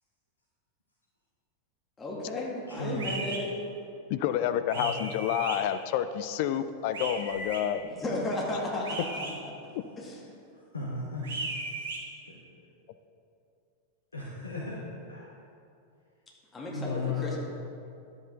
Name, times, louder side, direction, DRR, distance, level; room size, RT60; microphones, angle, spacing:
voice 1, 2.0-3.5 8.0-9.1 10.0-10.2 16.5-17.4, left 1 dB, 15° left, -3 dB, 2.1 m, -33 dB
voice 2, 2.7-3.0 4.7-4.9 10.7-11.3 14.1-14.8 15.1-15.3 16.7-17.3, left 3 dB, 75° left, -5 dB, 1.2 m, -34 dB
sound 1, 3.0-3.4 4.7-5.6 6.9-7.6 8.8-9.3 11.2-12.0, right 3 dB, 60° right, 1.5 m, -36 dB
voice 3, 4.1-7.8 9.8-9.9, left 10 dB, 50° left, 11 dB, 0.4 m, -29 dB
10.5 x 8.1 x 3.8 m, 2.6 s
figure-of-eight pair, 90°, 0 cm